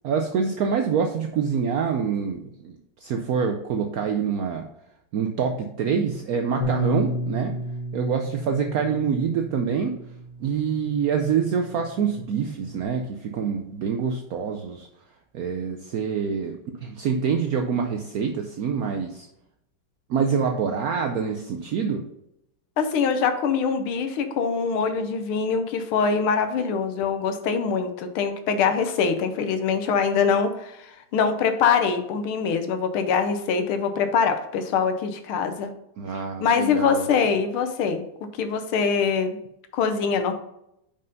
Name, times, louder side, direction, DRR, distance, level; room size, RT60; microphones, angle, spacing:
voice 1, 0.0-2.8 3.0-4.6 5.1-7.5 7.9-10.0 10.4-14.9 15.3-19.3 20.1-22.0 36.0-37.1, right 6 dB, 75° right, 4 dB, 0.8 m, -26 dB
Bass guitar, 6.6-12.8, equal, 65° left, 1.5 m, -33 dB
voice 2, 22.8-35.7 36.1-38.0 38.4-39.4 39.7-40.3, left 6 dB, 85° left, 8 dB, 1.7 m, -23 dB
5.5 x 5.3 x 5.2 m, 0.79 s
omnidirectional pair, 2.3 m